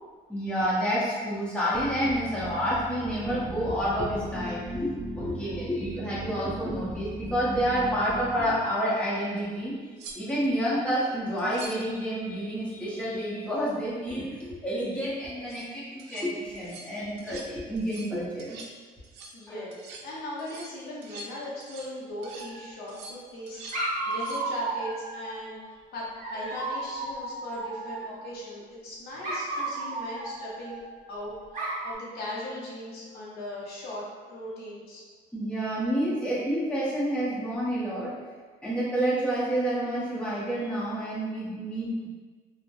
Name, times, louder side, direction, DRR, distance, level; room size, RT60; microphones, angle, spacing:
voice 1, 0.3-9.8 10.1-18.6 19.5-19.6 26.4-26.5 35.3-38.2 38.6-42.1, equal, 5° left, -9 dB, 0.9 m, -29 dB
sound 1, 1.7-8.6, equal, 10° right, 0.4 m, -38 dB
sound 2, 9.4-9.5 10.0-10.5 11.4-11.9 15.3-15.7 16.0-16.3 16.5-16.9 17.2-17.5 17.8-18.1 18.4-18.8 19.0-19.4 19.7-20.1 20.4-22.0 22.2-22.5 22.9-23.8 24.1-24.5 27.1-27.2, right 3 dB, 85° right, 0.4 m, -45 dB
voice 2, 19.3-35.0, left 1 dB, 65° left, -5 dB, 0.7 m, -39 dB
Dog, 22.2-23.0 23.7-25.4 26.2-28.3 29.2-31.1 31.5-31.9, right 2 dB, 50° right, 0.7 m, -34 dB
3.1 x 2.1 x 2.6 m, 1.5 s
cardioid pair, 110°, 17 cm